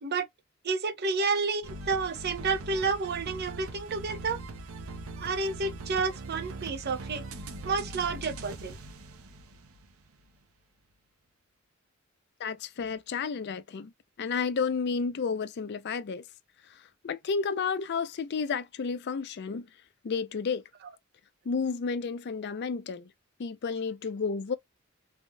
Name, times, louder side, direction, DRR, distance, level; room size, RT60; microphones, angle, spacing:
voice 1, 0.6-4.4 5.2-7.3 7.6-8.8, right 4 dB, 50° right, 0.7 m, -30 dB
sound 1, 1.6-10.1, right 2 dB, 85° right, 0.7 m, -41 dB
voice 2, 12.4-13.9 14.2-16.2 17.0-19.7 20.0-20.6 21.5-23.1 23.4-24.5, left 5 dB, 55° left, 0.4 m, -31 dB
3.4 x 2.5 x 2.2 m
head